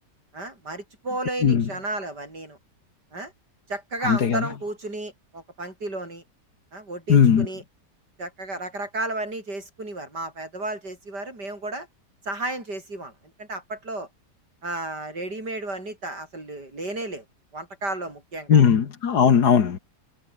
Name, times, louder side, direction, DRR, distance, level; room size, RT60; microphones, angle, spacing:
voice 1, 0.3-2.6 3.1-3.3 3.7-6.2 6.7-7.6 8.2-11.9 12.2-13.1 13.4-14.1 14.6-17.2 17.5-18.6, right 2 dB, 70° right, 8.4 m, -33 dB
voice 2, 4.1-4.4 7.1-7.5 18.5-19.8, left 7 dB, 65° left, 2.0 m, -18 dB
omnidirectional pair, 1.8 m